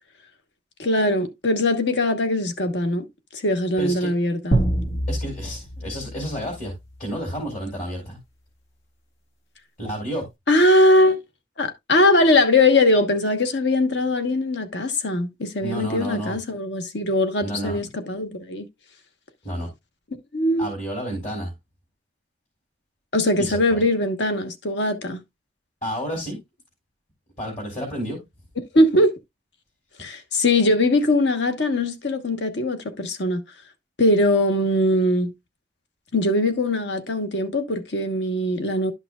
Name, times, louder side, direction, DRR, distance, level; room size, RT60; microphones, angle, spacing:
voice 1, 0.8-3.1 3.3-4.6 10.5-11.2 11.6-18.7 20.3-20.7 23.1-25.2 28.7-29.1 30.0-33.4 34.0-35.3 36.1-38.9, left 1 dB, 70° left, 1.1 m, -21 dB
voice 2, 3.8-4.1 5.1-6.7 7.0-8.2 9.8-10.3 15.6-16.4 17.4-17.8 19.4-19.7 20.6-21.5 23.4-23.8 25.8-26.4 27.4-28.2, equal, 45° left, 3.5 m, -30 dB
sound 1, 4.5-7.3, right 1 dB, 90° left, 1.7 m, -26 dB
12.0 x 5.9 x 2.3 m
head